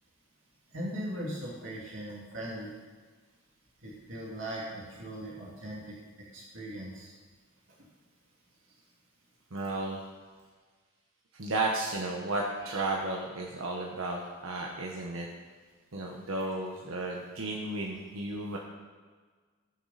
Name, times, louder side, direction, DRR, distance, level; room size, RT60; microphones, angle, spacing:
voice 1, 0.7-2.7 3.8-5.9 6.3-7.1, equal, 70° right, -5 dB, 2.5 m, -39 dB
voice 2, 9.5-10.0 11.4-15.3 15.9-18.6, right 2 dB, 90° right, -1 dB, 1.2 m, -33 dB
19.0 x 7.4 x 4.2 m, 1.5 s
head